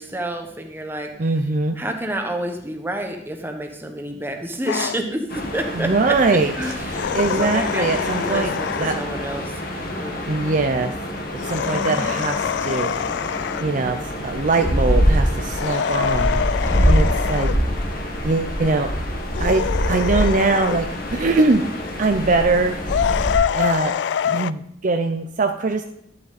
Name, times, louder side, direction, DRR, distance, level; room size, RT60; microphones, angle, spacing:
voice 1, 0.0-1.1 1.8-6.2 6.6-10.3 11.6-12.1 16.6-17.3, right 1 dB, 10° right, 4 dB, 1.1 m, -29 dB
voice 2, 1.2-1.8 5.7-6.5 7.1-8.5 8.8-9.0 10.3-10.9 11.5-12.9 13.4-16.4 16.8-17.5 18.2-18.9 19.4-21.7 22.0-22.8 23.5-24.0 24.2-25.8, right 3 dB, 45° right, 6 dB, 0.5 m, -22 dB
sound 1, 4.7-5.0 6.9-9.1 11.4-13.7 15.5-17.6 19.3-20.9 22.9-24.5, left 8 dB, 70° left, 0.3 m, -25 dB
sound 2, 5.3-23.4, equal, 55° left, 1.3 m, -25 dB
11.0 x 7.4 x 4.1 m, 0.76 s
head